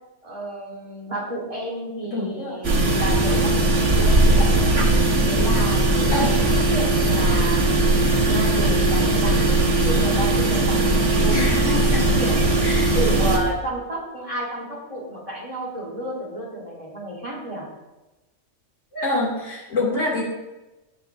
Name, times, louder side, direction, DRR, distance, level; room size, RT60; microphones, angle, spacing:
voice 1, 0.2-4.7 5.3-11.4 11.9-12.4 12.9-17.7, right 1 dB, 25° right, -4 dB, 3.8 m, -32 dB
voice 2, 2.1-2.6 6.1-6.4 11.3-12.3 12.6-12.9 18.9-20.2, left 2 dB, 70° left, -4 dB, 3.0 m, -26 dB
sound 1, 2.6-13.4, right 2 dB, 65° right, 1.8 m, -19 dB
17.5 x 9.2 x 2.7 m, 1.1 s
omnidirectional pair, 1.3 m